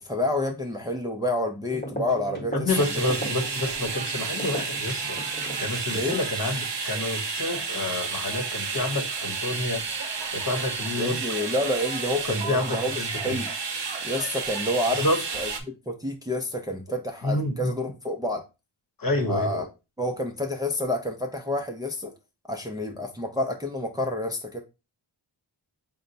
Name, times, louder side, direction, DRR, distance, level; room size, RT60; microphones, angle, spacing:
voice 1, 0.0-3.0 5.9-6.2 11.0-13.5 14.0-15.0 15.3-18.4 19.3-19.6 20.0-22.1 22.5-24.6, left 1 dB, 10° right, 0.5 m, -29 dB
sound 1, 1.6-6.3, equal, 20° left, 1.2 m, -37 dB
voice 2, 2.5-5.2 5.6-9.8 10.3-11.2 12.2-13.4 15.0-15.2 17.2-17.7 19.0-19.7, left 1 dB, 45° left, 1.0 m, -28 dB
sound 2, 2.7-15.6, right 5 dB, 60° right, 0.8 m, -31 dB
4.3 x 2.2 x 3.8 m
wide cardioid pair, 85°, 47 cm